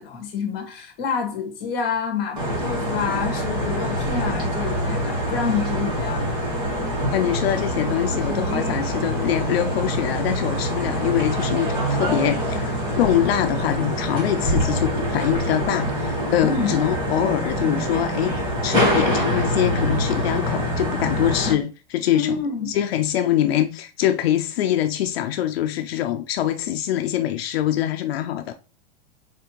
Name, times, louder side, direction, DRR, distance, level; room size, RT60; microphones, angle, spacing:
voice 1, 0.0-6.4 16.4-16.7 21.5-21.6 22.1-22.7, left 6 dB, 35° left, 1.8 m, -28 dB
sound 1, 2.4-21.5, equal, 15° right, 2.0 m, -25 dB
voice 2, 7.1-18.3 18.6-22.4 22.7-28.5, left 11 dB, 85° left, 0.5 m, -24 dB
4.3 x 3.3 x 3.1 m
supercardioid pair, 145°, 30 cm